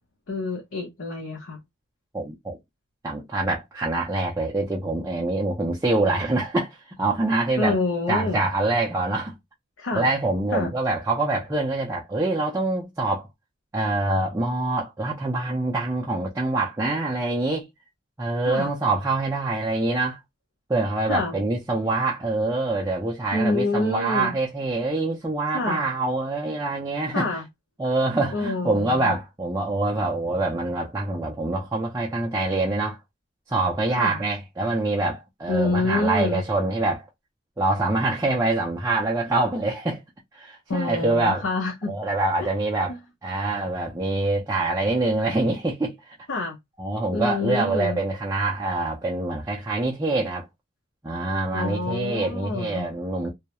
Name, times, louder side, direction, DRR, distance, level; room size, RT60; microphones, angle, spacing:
voice 1, 0.3-1.6 7.6-8.4 9.8-10.1 10.5-10.7 18.4-18.7 21.1-21.4 23.3-24.3 25.5-25.8 27.1-27.4 28.3-29.1 34.0-34.2 35.5-36.4 40.7-41.9 42.4-42.5 42.9-43.0 46.3-46.6 47.1-48.0 51.5-52.9, left 2 dB, 85° left, 0.6 m, -27 dB
voice 2, 2.1-2.6 3.0-7.8 8.1-9.3 9.9-13.3 13.7-17.7 18.2-20.2 20.7-27.3 27.8-33.0 33.5-37.1 37.6-40.0 40.3-41.4 41.9-42.9 43.2-46.1 46.8-50.5 51.0-53.3, right 2 dB, 15° right, 0.4 m, -25 dB
2.2 x 2.0 x 2.8 m
head